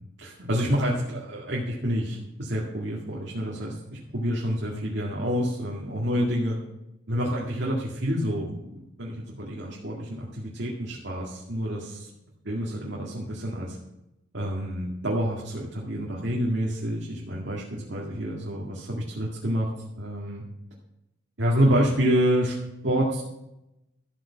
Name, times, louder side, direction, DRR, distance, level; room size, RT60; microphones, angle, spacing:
voice 1, 0.2-6.6 7.1-12.1 12.4-13.8 14.3-19.7 20.0-20.4 21.4-22.5 22.8-23.2, equal, 65° right, -4 dB, 2.1 m, -28 dB
13.5 x 8.5 x 5.8 m, 0.91 s
head